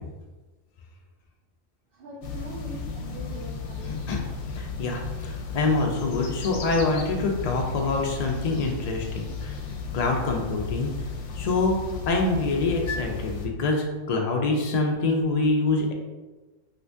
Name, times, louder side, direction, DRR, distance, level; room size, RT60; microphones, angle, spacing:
voice 1, 1.9-4.0, right 2 dB, 60° right, -4 dB, 0.6 m, -41 dB
sound 1, 2.2-13.5, left 5 dB, 70° left, 0.8 m, -34 dB
voice 2, 3.9-4.2 4.5-9.5 9.9-10.9 11.4-11.8 12.1-15.9, left 3 dB, 90° left, 1 dB, 0.3 m, -25 dB
2.9 x 2.6 x 3.3 m, 1.2 s
omnidirectional pair, 1.3 m